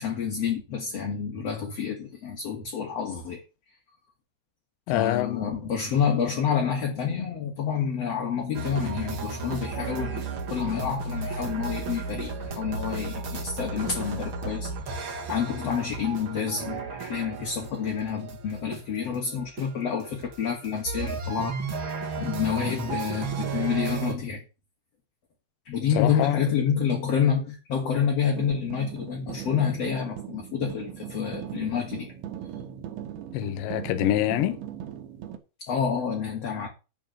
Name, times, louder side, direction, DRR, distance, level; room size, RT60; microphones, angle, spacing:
voice 1, 0.0-3.4 4.9-10.2 10.5-24.4 25.7-32.1 35.6-36.7, left 7 dB, 45° left, 2.6 m, -28 dB
voice 2, 4.9-5.6 25.9-26.4 33.3-34.6, left 14 dB, 85° left, 3.1 m, -26 dB
sound 1, 8.5-24.1, right 4 dB, 55° right, 1.4 m, -34 dB
sound 2, 28.3-35.4, right 10 dB, 85° right, 3.7 m, -39 dB
11.5 x 4.8 x 7.8 m
omnidirectional pair, 5.2 m